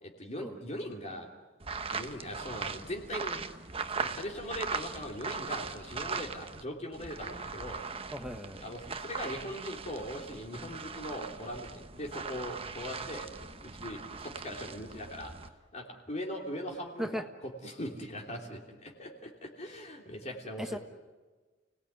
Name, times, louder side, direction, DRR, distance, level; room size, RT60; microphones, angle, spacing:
voice 1, 0.0-1.3 1.9-3.4 3.9-7.8 8.6-13.3 13.6-15.3 15.7-20.8, equal, 35° left, 1 dB, 3.1 m, -40 dB
sound 1, 1.6-6.6 6.9-15.5, right 4 dB, 30° right, 1.1 m, -39 dB
voice 2, 8.1-8.6 17.0-17.2 20.6-20.8, equal, ahead, 6 dB, 1.3 m, -36 dB
30.0 x 19.0 x 9.4 m, 1.3 s
head